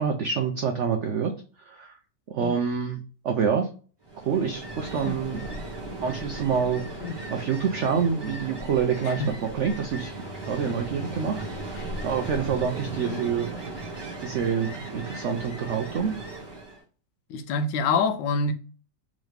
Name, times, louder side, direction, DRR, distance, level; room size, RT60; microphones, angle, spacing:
voice 1, 0.0-1.3 1.6-1.9 2.3-3.7 4.2-5.4 6.0-13.5 14.2-16.2, right 6 dB, 85° right, 0.6 m, -27 dB
Ocean, 4.0-16.8, right 2 dB, 15° right, 1.3 m, -37 dB
Bowed string instrument, 9.7-14.0, left 4 dB, 45° left, 1.1 m, -46 dB
voice 2, 17.3-18.5, left 4 dB, 90° left, 1.3 m, -26 dB
3.7 x 3.1 x 3.3 m
omnidirectional pair, 1.9 m